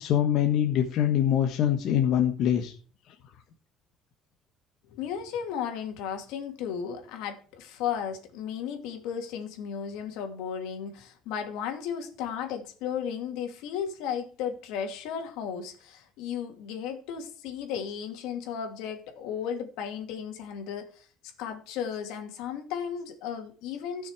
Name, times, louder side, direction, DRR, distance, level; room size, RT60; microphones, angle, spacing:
voice 1, 0.0-2.7, left 10 dB, 60° left, 3 dB, 1.4 m, -24 dB
voice 2, 4.9-21.1 21.4-24.1, left 8 dB, 90° left, 4 dB, 2.5 m, -35 dB
15.0 x 6.4 x 4.9 m, 0.40 s
cardioid pair, 135°, 0 cm